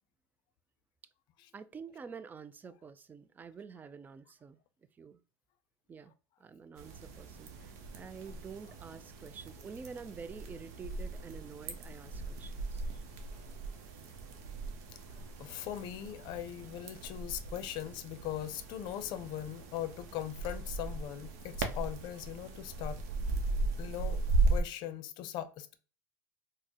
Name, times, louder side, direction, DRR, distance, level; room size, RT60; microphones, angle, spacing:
voice 1, 1.5-4.6 5.0-5.2 5.9-6.1 6.4-12.8, right 5 dB, 20° right, 0.3 m, -48 dB
sound 1, 6.8-24.6, right 3 dB, 80° right, 0.7 m, -37 dB
voice 2, 15.4-23.0 23.8-24.2 24.5-25.7, left 11 dB, 55° left, 0.5 m, -40 dB
4.3 x 2.1 x 2.9 m
supercardioid pair, 105°, 9 cm